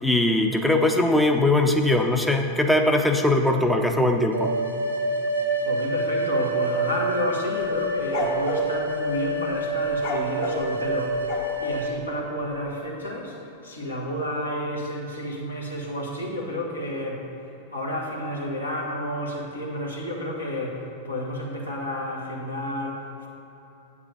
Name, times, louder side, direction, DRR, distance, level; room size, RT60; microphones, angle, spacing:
voice 1, 0.0-4.6, left 1 dB, ahead, 3 dB, 0.6 m, -21 dB
sound 1, 4.3-11.9, right 2 dB, 80° right, 1.3 m, -27 dB
voice 2, 5.6-11.3 11.6-17.2 17.7-23.3, left 1 dB, 80° left, -3 dB, 1.6 m, -30 dB
sound 2, 7.6-8.7 9.9-11.8, left 4 dB, 50° left, 1.2 m, -30 dB
8.7 x 4.8 x 6.6 m, 3.0 s
figure-of-eight pair, 90°, 0 cm